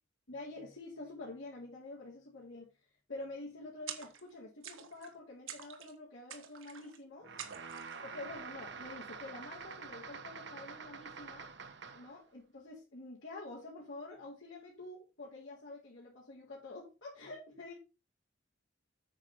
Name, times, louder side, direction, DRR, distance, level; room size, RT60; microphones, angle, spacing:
voice 1, 0.3-2.7 3.1-7.3 8.0-11.5 11.9-17.8, left 2 dB, 70° left, -7 dB, 3.9 m, -48 dB
sound 1, 3.9-4.4 4.6-5.1 5.5-6.0 6.3-7.0 7.4-8.0, right 8 dB, 75° right, 1.5 m, -47 dB
sound 2, 7.2-12.2, right 5 dB, 55° right, 1.0 m, -47 dB
9.0 x 6.3 x 4.4 m, 0.29 s
head